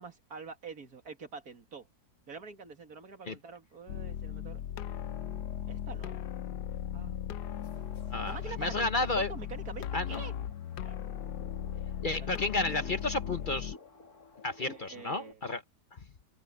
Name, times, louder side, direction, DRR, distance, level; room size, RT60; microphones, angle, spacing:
voice 1, 0.0-1.9 2.3-4.6 5.7-6.2 6.9-7.3 8.2-10.3 10.8-11.0 12.2-12.3 14.6-15.4, right 5 dB, 65° right, 2.6 m, -45 dB
sound 1, 3.9-13.7, left 10 dB, 85° left, 1.4 m, -38 dB
sound 2, 7.4-15.3, left 4 dB, 65° left, 3.3 m, -53 dB
voice 2, 8.1-9.3 9.9-10.2 12.0-13.8 14.4-15.6, left 2 dB, 40° left, 0.8 m, -32 dB
omnidirectional pair, 1.7 m